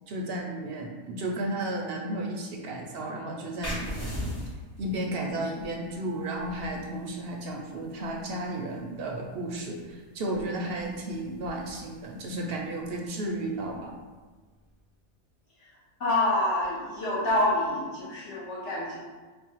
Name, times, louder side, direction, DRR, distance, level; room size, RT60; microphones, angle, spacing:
voice 1, 0.1-4.3 4.8-13.9, right 1 dB, 60° right, 0 dB, 0.6 m, -33 dB
sound 1, 3.6-14.9, equal, 45° left, 1.8 m, -43 dB
voice 2, 16.0-19.0, left 1 dB, 60° left, -8 dB, 1.1 m, -27 dB
4.2 x 2.0 x 4.4 m, 1.3 s
omnidirectional pair, 1.4 m